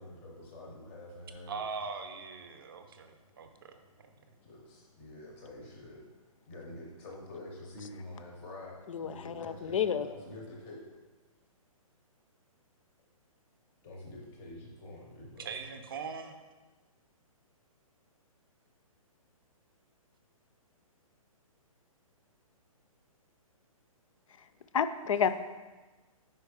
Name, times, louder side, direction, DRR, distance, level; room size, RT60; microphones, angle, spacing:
voice 1, 0.0-1.6 4.4-6.0 6.5-10.9 13.8-15.5, left 1 dB, 10° left, -2 dB, 0.5 m, -47 dB
voice 2, 1.5-3.7 15.4-16.4, right 5 dB, 40° right, 7 dB, 0.5 m, -41 dB
voice 3, 8.9-10.1 24.7-25.3, left 7 dB, 65° left, 12 dB, 0.4 m, -30 dB
5.2 x 4.4 x 4.8 m, 1.2 s
hypercardioid pair, 175°, 18 cm